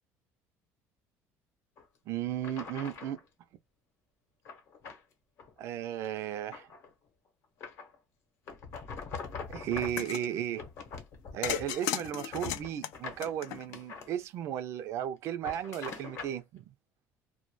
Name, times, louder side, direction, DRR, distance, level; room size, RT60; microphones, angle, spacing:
sound 1, 1.8-1.9 2.4-3.2 4.5-5.0 5.4-5.6 6.0-6.9 7.6-8.0 8.5-10.1 10.5-11.7 12.0-14.1 15.3-16.4, left 5 dB, 55° left, 0.8 m, -43 dB
voice 1, 2.1-3.2 5.6-6.7 9.5-10.6 11.3-16.6, right 10 dB, 55° right, 0.3 m, -35 dB
sound 2, 9.8-10.3 11.4-13.9, left 12 dB, 85° left, 0.4 m, -35 dB
2.2 x 2.0 x 3.0 m
cardioid pair, 145°, 6 cm